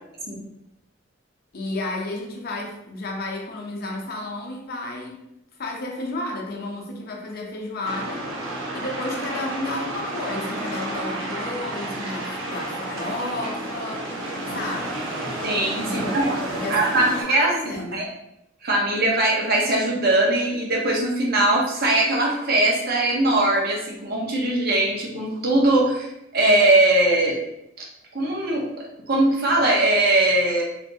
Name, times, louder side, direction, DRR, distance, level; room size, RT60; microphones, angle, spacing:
voice 1, 1.5-5.3 5.6-15.2 15.8-16.1 16.5-18.1, left 2 dB, 50° left, 0 dB, 0.6 m, -32 dB
sound 1, 7.8-17.2, right 1 dB, 85° right, 0.7 m, -31 dB
voice 2, 15.4-16.3 16.7-18.1 18.6-26.1 26.3-27.4 27.8-27.9 28.1-30.6, right 1 dB, 50° right, -1 dB, 0.7 m, -21 dB
3.3 x 2.5 x 2.6 m, 0.83 s
head